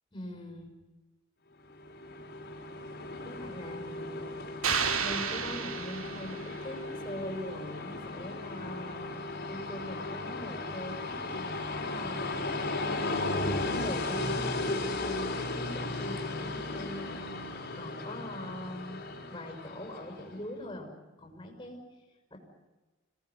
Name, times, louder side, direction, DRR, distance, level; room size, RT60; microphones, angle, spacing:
voice 1, 0.1-0.7 3.2-4.6 4.9-12.4 13.3-17.3 17.7-20.9 21.2-21.8 22.3-22.4, left 1 dB, 20° left, 2 dB, 5.8 m, -42 dB
Train, 1.7-20.3, left 2 dB, 50° left, 4.2 m, -36 dB
sound 1, 4.6-6.8, right 6 dB, 85° right, 2.2 m, -32 dB
26.5 x 18.5 x 9.5 m, 1.2 s
head